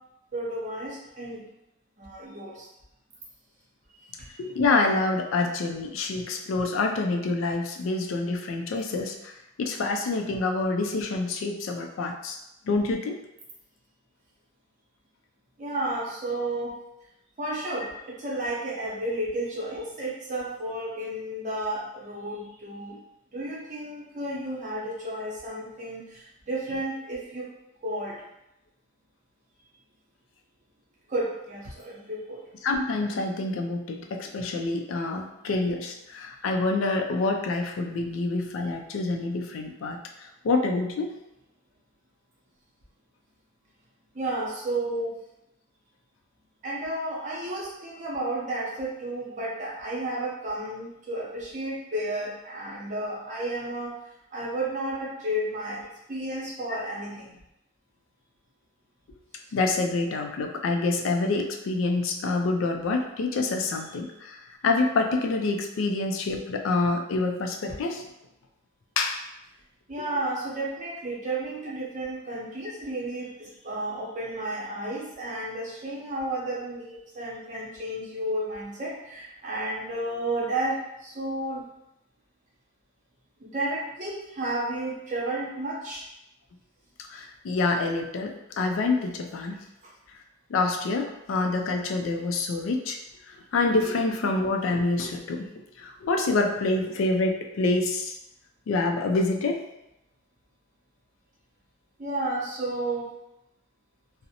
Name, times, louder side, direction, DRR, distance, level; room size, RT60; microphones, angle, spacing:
voice 1, 0.3-1.4 2.0-2.7 4.2-4.3 15.6-16.7 17.4-23.0 23.3-27.5 27.8-28.2 31.1-32.4 44.1-45.1 46.6-53.9 54.3-55.8 56.1-57.3 67.7-67.8 69.9-81.6 83.4-86.0 102.0-103.1, right 1 dB, 40° right, -4 dB, 0.6 m, -32 dB
voice 2, 4.4-9.3 9.6-12.4 12.7-13.2 32.6-40.0 40.4-41.1 59.5-64.4 64.6-68.1 69.0-69.2 87.1-89.6 90.5-93.0 93.5-95.5 95.8-98.1 98.7-99.6, left 3 dB, 90° left, 3 dB, 0.4 m, -27 dB
2.5 x 2.0 x 2.7 m, 0.86 s
head